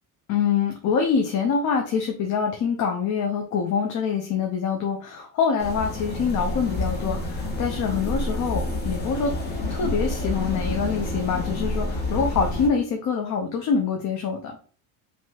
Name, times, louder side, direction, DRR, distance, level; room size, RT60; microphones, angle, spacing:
voice 1, 0.3-9.3 9.7-14.5, left 6 dB, 50° left, 2 dB, 0.7 m, -25 dB
sound 1, 5.6-12.7, left 1 dB, 25° left, 1.4 m, -28 dB
4.6 x 3.0 x 2.9 m, 0.42 s
cardioid pair, 150°, 39 cm